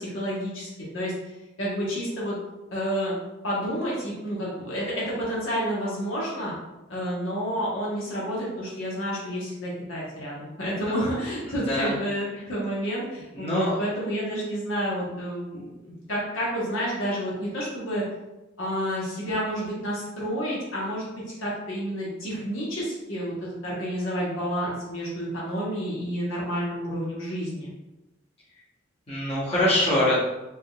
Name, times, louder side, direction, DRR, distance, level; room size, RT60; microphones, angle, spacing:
voice 1, 0.0-2.4 2.7-3.1 3.4-6.5 6.9-18.0 18.6-21.1 21.4-27.7, equal, 80° left, -5 dB, 1.1 m, -30 dB
voice 2, 13.3-13.7 29.1-30.1, left 1 dB, 30° left, -9 dB, 1.0 m, -23 dB
3.4 x 2.8 x 2.3 m, 1.0 s
head